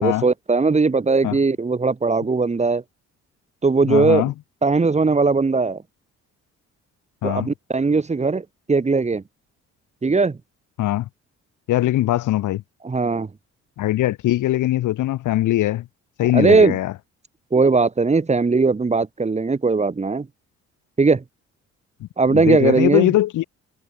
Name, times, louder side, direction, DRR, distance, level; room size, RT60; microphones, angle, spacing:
voice 1, 0.0-2.8 3.6-4.3 4.6-5.8 7.2-9.2 10.0-10.4 12.8-13.3 16.3-16.8 17.5-20.3 21.0-21.2 22.2-23.1, right 4 dB, 20° right, 1.3 m, -19 dB
voice 2, 3.9-4.3 7.2-7.5 10.8-11.1 11.7-12.6 13.8-15.9 16.2-16.9 22.0-23.4, left 14 dB, 80° left, 1.8 m, -21 dB
cardioid pair, 90°, 30 cm